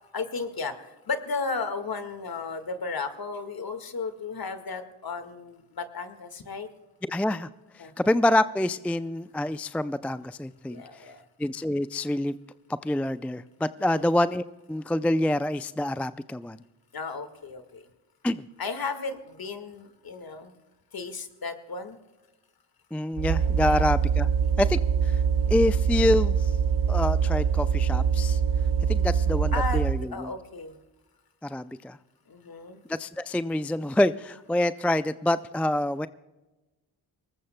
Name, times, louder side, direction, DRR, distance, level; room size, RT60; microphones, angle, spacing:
voice 1, 0.1-6.7 7.8-7.9 10.7-11.2 13.8-14.1 16.9-17.9 18.6-20.5 20.9-22.0 23.6-23.9 29.5-30.8 32.3-32.8, left 4 dB, 50° left, 8 dB, 1.8 m, -34 dB
voice 2, 7.1-7.5 8.0-10.8 11.4-12.3 12.8-16.6 18.2-18.4 22.9-24.3 24.6-25.2 25.5-26.5 26.9-28.4 28.9-30.3 31.4-32.0 32.9-36.1, left 1 dB, 5° left, 15 dB, 0.4 m, -26 dB
sound 1, 23.2-30.1, right 7 dB, 45° right, 1.0 m, -24 dB
23.0 x 19.5 x 2.2 m, 1.1 s
supercardioid pair, 40°, 47 cm